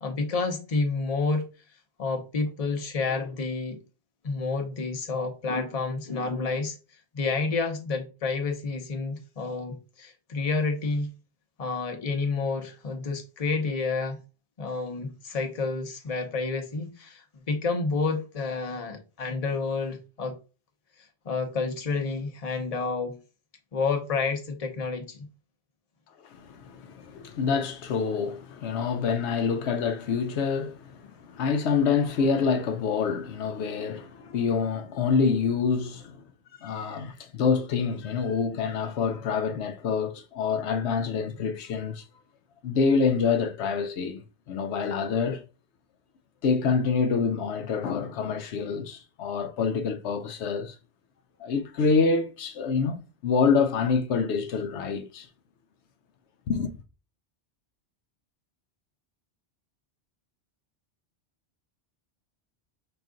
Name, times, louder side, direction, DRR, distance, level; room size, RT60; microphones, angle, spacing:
voice 1, 0.0-1.4 2.0-3.8 4.2-6.8 7.1-11.1 11.6-14.2 14.6-20.4 21.2-23.2 23.7-25.3, left 4 dB, 35° left, 0.9 m, -29 dB
voice 2, 26.2-36.2 36.6-42.1 42.6-45.4 46.4-50.8 51.4-55.3 56.5-56.7, left 5 dB, 75° left, 0.9 m, -26 dB
5.8 x 2.4 x 3.7 m
omnidirectional pair, 1.1 m